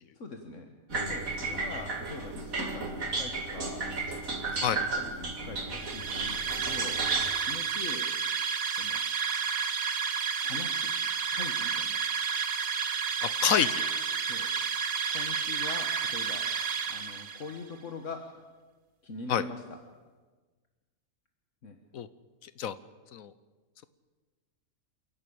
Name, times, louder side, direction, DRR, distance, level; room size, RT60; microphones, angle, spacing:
voice 1, 0.2-3.9 4.4-7.0 7.4-8.1 8.8-9.0 10.4-10.9 11.3-12.0 14.2-14.5 15.1-18.3 19.0-19.8 21.6-21.8, left 4 dB, 65° left, 4 dB, 1.8 m, -43 dB
sound 1, 0.9-7.3, right 3 dB, 85° right, 2.6 m, -34 dB
sound 2, 5.7-17.6, right 6 dB, 50° right, 1.2 m, -31 dB
voice 2, 13.2-13.8 19.3-19.4 21.9-22.1 22.4-22.7 23.1-23.3, left 9 dB, 85° left, 14 dB, 1.3 m, -28 dB
28.5 x 11.5 x 8.7 m, 1.3 s
omnidirectional pair, 1.4 m